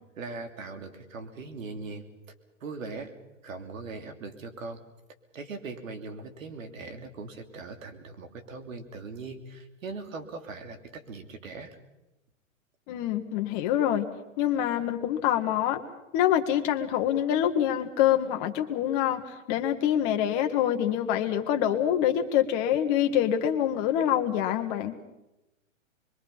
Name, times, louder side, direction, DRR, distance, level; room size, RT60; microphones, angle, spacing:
voice 1, 0.2-2.1 2.6-3.1 3.4-4.8 5.3-11.8, right 3 dB, 75° right, 7 dB, 3.0 m, -40 dB
voice 2, 12.9-14.1 14.4-15.8 16.1-24.9, left 10 dB, 30° left, 5 dB, 1.5 m, -25 dB
25.5 x 22.5 x 5.6 m, 0.98 s
hypercardioid pair, 155°, 40 cm